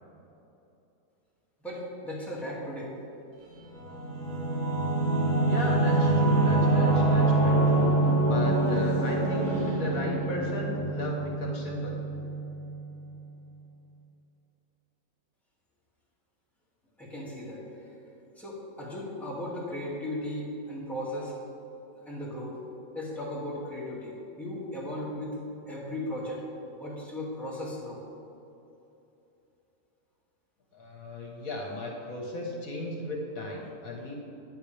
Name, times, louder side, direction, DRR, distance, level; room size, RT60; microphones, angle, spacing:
voice 1, 1.6-3.0 17.0-18.0 18.4-21.4 21.9-22.6 22.9-25.4 25.7-26.4 26.8-28.0, left 1 dB, ahead, -6 dB, 2.3 m, -36 dB
Singing / Musical instrument, 3.6-12.8, right 2 dB, 60° right, 2.1 m, -25 dB
voice 2, 5.5-12.0 30.7-34.1, left 2 dB, 65° left, -1 dB, 1.8 m, -35 dB
14.5 x 9.5 x 3.4 m, 2.9 s
omnidirectional pair, 1.6 m